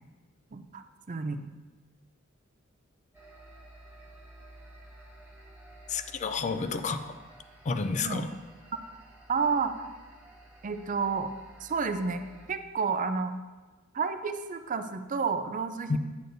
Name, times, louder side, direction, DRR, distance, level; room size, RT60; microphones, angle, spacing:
voice 1, 0.5-1.4 8.0-8.2 9.3-9.9 10.6-11.3 11.6-12.2 12.5-13.3 13.9-16.0, right 5 dB, 40° right, 9 dB, 0.4 m, -30 dB
sound 1, 3.1-12.5, right 1 dB, 10° right, 1.0 m, -53 dB
voice 2, 5.9-7.1 7.6-8.3 15.9-16.0, left 4 dB, 35° left, 9 dB, 0.4 m, -30 dB
9.2 x 8.3 x 2.6 m, 1.2 s
head